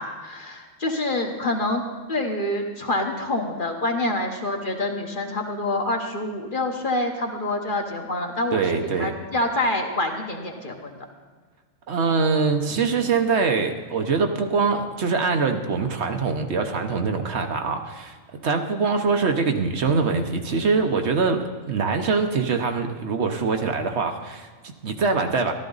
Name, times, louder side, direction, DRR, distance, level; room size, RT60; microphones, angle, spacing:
voice 1, 0.0-1.8 2.1-8.6 9.0-11.0, left 2 dB, 40° left, 2 dB, 1.3 m, -26 dB
voice 2, 8.5-9.1 11.9-18.2 18.4-25.5, right 4 dB, 60° right, 5 dB, 1.1 m, -23 dB
14.5 x 12.5 x 4.0 m, 1.5 s
omnidirectional pair, 1.3 m